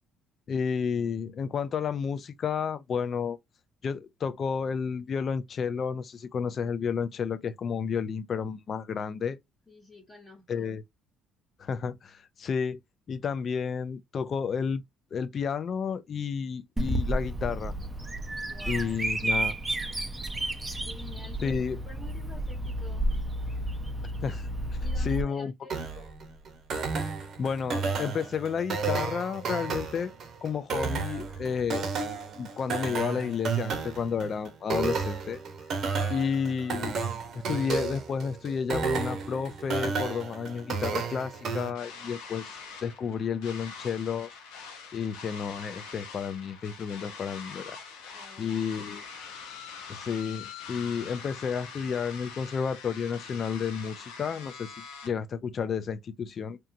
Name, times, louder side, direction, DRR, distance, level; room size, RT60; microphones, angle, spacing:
voice 1, 0.5-3.4 3.8-9.4 10.5-10.8 11.6-12.8 13.1-14.8 15.1-17.7 18.7-19.5 21.4-21.8 24.2-24.4 25.0-25.5 27.4-30.1 30.4-31.9 32.4-35.4 36.1-36.9 37.5-42.6 42.8-44.3 44.9-47.8 48.4-49.0 49.9-54.8 55.0-56.6, left 6 dB, 50° left, 0.4 m, -31 dB
voice 2, 9.7-10.8 18.5-19.1 20.8-23.1 24.8-25.8 48.1-49.0, left 2 dB, 30° left, 1.1 m, -50 dB
Bird vocalization bird call bird song, 16.8-25.2, right 1 dB, 15° right, 0.5 m, -31 dB
sound 1, 25.7-41.7, right 5 dB, 55° right, 0.8 m, -32 dB
sound 2, 41.7-55.1, left 5 dB, 90° left, 0.6 m, -44 dB
2.8 x 2.2 x 2.5 m
supercardioid pair, 80°, 0 cm